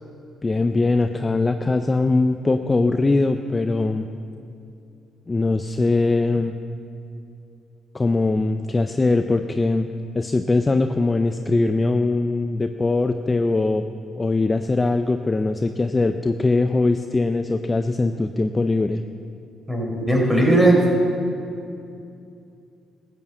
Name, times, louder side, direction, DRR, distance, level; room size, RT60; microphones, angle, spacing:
voice 1, 0.4-4.1 5.3-6.5 7.9-9.9 10.1-13.8 14.2-19.0, left 3 dB, 25° left, 7 dB, 0.5 m, -21 dB
voice 2, 19.7-20.8, right 1 dB, 5° right, -2 dB, 3.8 m, -17 dB
14.0 x 7.3 x 8.1 m, 2.6 s
cardioid pair, 90°, 0 cm